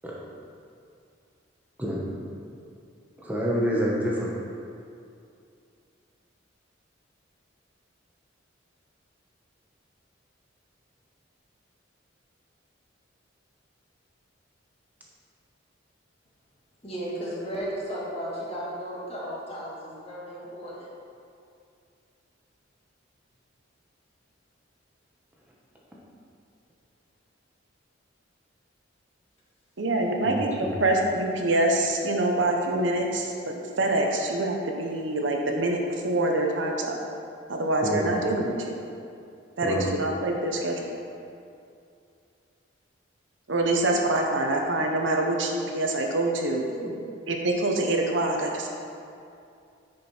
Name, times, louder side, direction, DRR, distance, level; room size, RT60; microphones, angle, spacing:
voice 1, 3.2-4.3 30.2-30.3 30.6-30.7 37.8-38.1 39.6-39.9 46.7-47.0, equal, 10° right, -5 dB, 1.3 m, -27 dB
voice 2, 16.8-20.9, equal, 30° left, -6 dB, 1.9 m, -34 dB
voice 3, 29.8-37.0 37.5-38.7 39.6-40.9 43.5-46.6 47.3-48.7, right 2 dB, 70° right, 1 dB, 0.9 m, -25 dB
9.4 x 5.2 x 4.4 m, 2.5 s
head